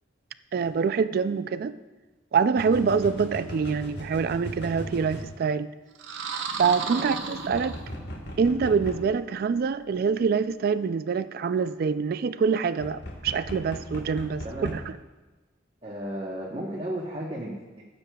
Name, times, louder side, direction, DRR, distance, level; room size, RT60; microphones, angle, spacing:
voice 1, 0.5-1.8 2.3-5.7 6.6-7.8 8.4-15.0, right 5 dB, 50° right, 14 dB, 0.3 m, -25 dB
sound 1, 0.6-0.7 2.6-5.3 7.5-9.1 12.8-14.8, equal, 60° left, 1.2 m, -38 dB
sound 2, 5.9-8.3, right 5 dB, 75° right, 0.8 m, -34 dB
voice 2, 6.9-7.3 14.4-14.8 15.8-17.9, right 1 dB, 30° right, -3 dB, 1.0 m, -34 dB
15.0 x 7.5 x 2.3 m, 1.2 s
head